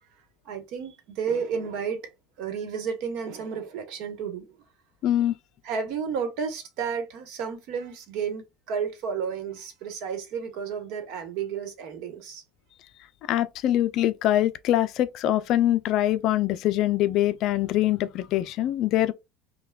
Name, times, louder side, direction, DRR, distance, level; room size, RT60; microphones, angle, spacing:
voice 1, 0.4-2.0 2.4-4.6 5.6-12.4, right 6 dB, 60° right, 1.1 m, -32 dB
voice 2, 5.0-5.3 13.3-19.1, left 13 dB, 50° left, 0.4 m, -23 dB
5.6 x 2.2 x 2.2 m
supercardioid pair, 135°, 0 cm